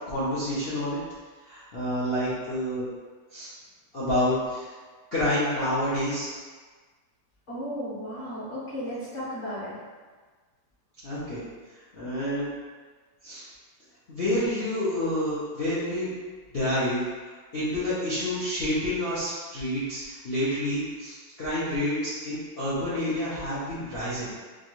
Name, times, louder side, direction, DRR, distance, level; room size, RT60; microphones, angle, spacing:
voice 1, 0.1-1.0 1.4-2.9 3.3-3.5 3.9-4.7 5.1-6.3 11.0-11.4 11.9-12.5 13.2-13.4 14.1-16.1 16.5-17.0 17.5-24.3, left 1 dB, 75° left, -12 dB, 0.5 m, -28 dB
voice 2, 7.5-9.8, equal, 45° left, -11 dB, 1.0 m, -34 dB
4.5 x 2.4 x 3.0 m, 1.4 s
omnidirectional pair, 2.3 m